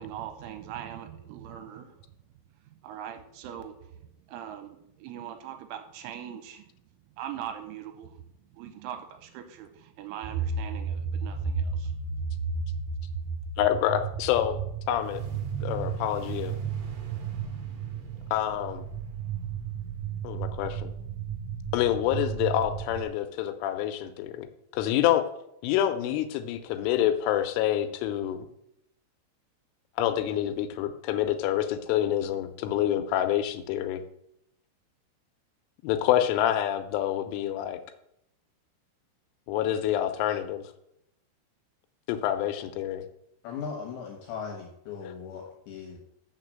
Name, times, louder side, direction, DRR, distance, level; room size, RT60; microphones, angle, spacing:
voice 1, 0.0-2.1 2.6-6.6 7.2-8.2 8.5-11.9, right 10 dB, 85° right, 7 dB, 3.1 m, -41 dB
sound 1, 10.2-23.0, right 6 dB, 60° right, 2.4 m, -33 dB
voice 2, 13.6-14.6 14.9-15.2 15.6-16.6 18.3-18.8 20.2-20.9 21.7-24.5 24.7-25.2 25.6-28.5 30.0-34.0 35.8-37.8 39.5-40.6 42.1-43.0, left 11 dB, 90° left, 8 dB, 3.2 m, -27 dB
voice 3, 43.4-46.0, left 6 dB, 70° left, 1 dB, 3.2 m, -38 dB
6.8 x 6.6 x 7.6 m, 0.78 s
omnidirectional pair, 5.7 m